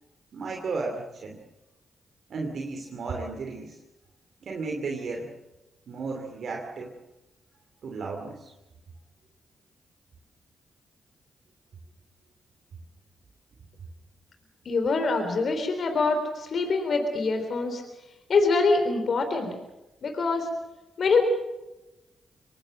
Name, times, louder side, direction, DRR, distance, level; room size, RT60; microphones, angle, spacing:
voice 1, 0.3-1.4 2.3-3.8 4.4-5.3 5.9-6.9 7.8-8.5, right 3 dB, 65° right, 1 dB, 2.7 m, -34 dB
voice 2, 14.7-17.8 18.3-19.5 20.0-20.5 21.0-21.2, left 4 dB, 60° left, 6 dB, 3.6 m, -24 dB
25.0 x 19.0 x 7.6 m, 1.0 s
supercardioid pair, 45°, 0 cm